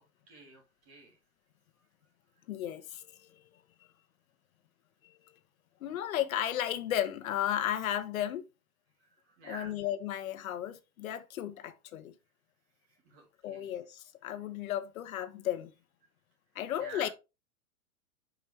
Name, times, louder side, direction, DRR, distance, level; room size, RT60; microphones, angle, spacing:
voice 1, 0.3-1.1 9.4-9.7 13.0-13.7 16.8-17.1, right 3 dB, 30° right, 2.8 m, -49 dB
voice 2, 2.5-3.4 5.0-5.4 5.8-8.4 9.4-12.1 13.4-15.7 16.5-17.1, left 11 dB, 65° left, 1.0 m, -34 dB
7.1 x 5.3 x 3.3 m
hypercardioid pair, 150°, 45 cm